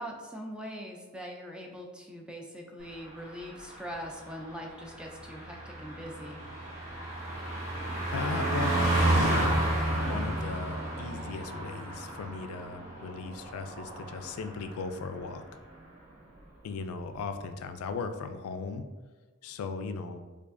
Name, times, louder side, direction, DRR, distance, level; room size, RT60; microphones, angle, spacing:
voice 1, 0.0-6.4, equal, 5° right, 1 dB, 0.3 m, -42 dB
Car passing by, 2.9-14.8 15.1-15.4, right 1 dB, 35° right, 1.2 m, -32 dB
voice 2, 8.1-15.4 16.6-18.9 19.4-20.2, left 4 dB, 85° left, 8 dB, 0.3 m, -37 dB
4.6 x 2.4 x 2.5 m, 1.3 s
head